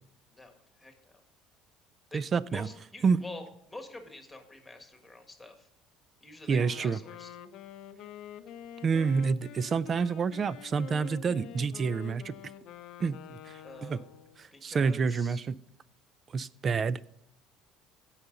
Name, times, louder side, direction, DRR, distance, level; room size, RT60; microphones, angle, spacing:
voice 1, 0.3-1.1 2.1-3.4 3.7-5.7 6.2-7.3 13.6-14.0 14.5-15.4, left 2 dB, 10° left, 5 dB, 1.7 m, -47 dB
voice 2, 2.1-2.7 3.0-3.2 6.5-7.0 8.8-12.3 13.0-14.0 14.6-15.6 16.3-17.0, right 5 dB, 30° right, 19 dB, 0.4 m, -28 dB
Wind instrument woodwind instrument, 6.5-14.5, left 11 dB, 60° left, 0.6 m, -47 dB
16.5 x 5.7 x 3.9 m, 0.76 s
cardioid pair, 125°, 0 cm